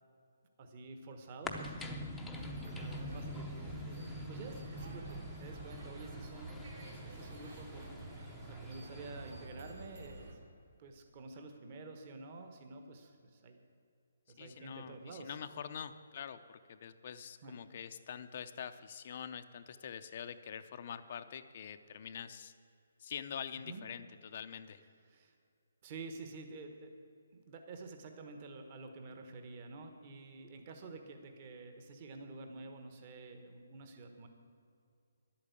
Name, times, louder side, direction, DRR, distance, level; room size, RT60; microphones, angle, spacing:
voice 1, 0.6-6.7 7.0-8.0 8.5-10.4 10.8-13.6 14.3-15.4 17.4-17.6 23.7-23.8 25.1-25.3 25.8-26.9 27.3-34.3, right 3 dB, 30° right, 5 dB, 1.3 m, -49 dB
sound 1, 1.4-9.5, left 1 dB, 5° left, 0.7 m, -45 dB
sound 2, 2.3-10.3, right 2 dB, 60° right, 3.1 m, -49 dB
voice 2, 14.4-22.5 23.0-24.8, left 8 dB, 40° left, 10 dB, 0.5 m, -45 dB
11.0 x 8.5 x 8.4 m, 2.4 s
hypercardioid pair, 165°, 0 cm